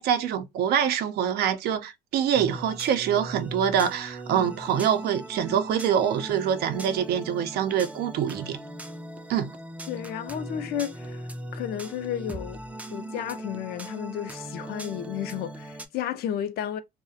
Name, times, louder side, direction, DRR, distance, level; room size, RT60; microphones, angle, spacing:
voice 1, 0.0-8.6 9.3-9.6, right 8 dB, 70° right, 0.5 m, -25 dB
sound 1, 2.3-15.9, right 1 dB, 10° right, 0.3 m, -39 dB
voice 2, 9.9-12.6 12.9-16.8, left 10 dB, 70° left, 0.4 m, -33 dB
2.4 x 2.1 x 2.5 m
cardioid pair, 110°, 17 cm